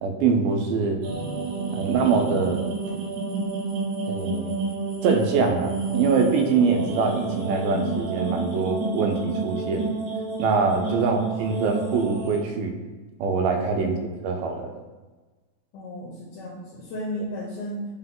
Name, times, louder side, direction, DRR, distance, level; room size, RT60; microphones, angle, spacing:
voice 1, 0.0-1.0 1.7-2.6 4.1-4.6 5.0-9.9 10.4-12.7 13.2-14.0 14.2-14.7, right 4 dB, 85° right, 4 dB, 2.1 m, -24 dB
sound 1, 1.0-12.4, right 4 dB, 70° right, 1.9 m, -30 dB
voice 2, 15.7-17.9, equal, 80° left, -4 dB, 1.8 m, -34 dB
5.5 x 2.1 x 3.7 m, 1.3 s
omnidirectional pair, 3.7 m